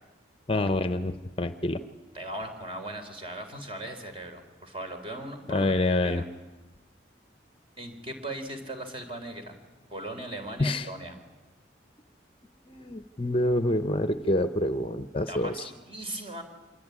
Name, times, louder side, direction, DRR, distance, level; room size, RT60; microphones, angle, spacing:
voice 1, 0.5-1.8 5.5-6.2 10.6-10.9 12.7-15.7, left 1 dB, 30° left, 10 dB, 0.8 m, -27 dB
voice 2, 2.1-5.7 6.0-6.3 7.8-9.6 9.9-11.2 15.3-16.4, right 1 dB, 30° right, 5 dB, 4.2 m, -38 dB
26.0 x 23.0 x 9.7 m, 1.2 s
head